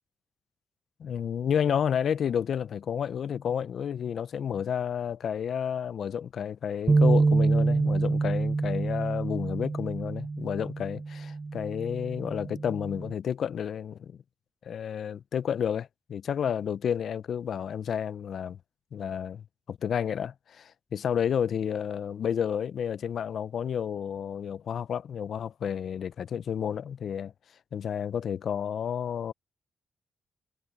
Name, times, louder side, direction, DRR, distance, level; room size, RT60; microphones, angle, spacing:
voice 1, 1.0-14.2 14.6-18.6 18.9-27.3 27.7-29.3, left 8 dB, 70° left, 0.5 m, -31 dB
sound 1, 6.9-13.1, right 3 dB, 35° right, 0.4 m, -27 dB
cardioid pair, 65°, 0 cm